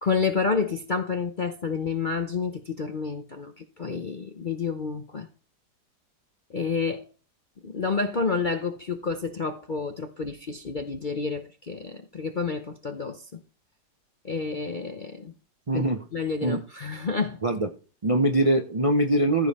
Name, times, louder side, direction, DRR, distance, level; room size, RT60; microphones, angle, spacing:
voice 1, 0.0-5.3 6.5-7.0 7.6-13.4 14.2-15.3 15.7-15.8 16.1-17.4, left 5 dB, 50° left, 0.6 m, -29 dB
voice 2, 15.7-16.0 16.4-16.6 17.4-17.7 18.0-19.5, right 1 dB, 45° right, 0.4 m, -22 dB
14.5 x 5.2 x 4.2 m
omnidirectional pair, 1.9 m